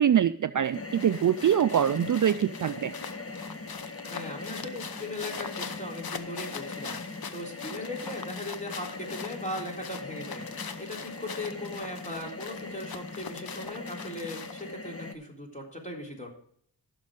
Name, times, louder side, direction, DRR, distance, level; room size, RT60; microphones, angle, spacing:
voice 1, 0.0-2.9, right 9 dB, 50° right, 13 dB, 0.5 m, -24 dB
sound 1, 0.7-14.8, left 6 dB, 60° left, 0.9 m, -43 dB
sound 2, 0.7-15.1, left 3 dB, 35° left, 1.3 m, -41 dB
voice 2, 4.1-16.3, left 1 dB, 20° left, -1 dB, 3.7 m, -39 dB
15.5 x 6.4 x 3.7 m, 0.65 s
cardioid pair, 50°, 41 cm